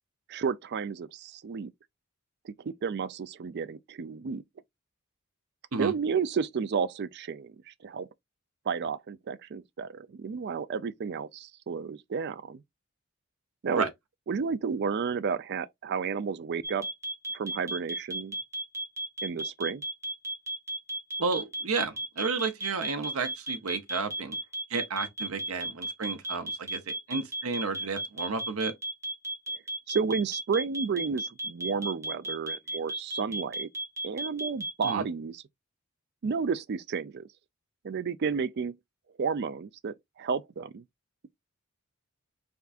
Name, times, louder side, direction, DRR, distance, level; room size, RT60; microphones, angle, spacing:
voice 1, 0.3-1.7 2.4-4.4 5.8-8.1 8.7-12.6 13.6-13.9 14.3-16.9 17.3-18.3 19.2-19.8 29.9-33.7 34.0-35.4 36.2-37.3 37.8-38.7 39.2-40.8, right 5 dB, 50° right, 0.4 m, -32 dB
sound 1, 16.6-34.9, right 1 dB, 15° right, 1.2 m, -34 dB
voice 2, 21.2-24.4 24.7-28.7 34.8-35.0, right 4 dB, 75° right, 0.8 m, -32 dB
4.4 x 3.5 x 2.4 m
head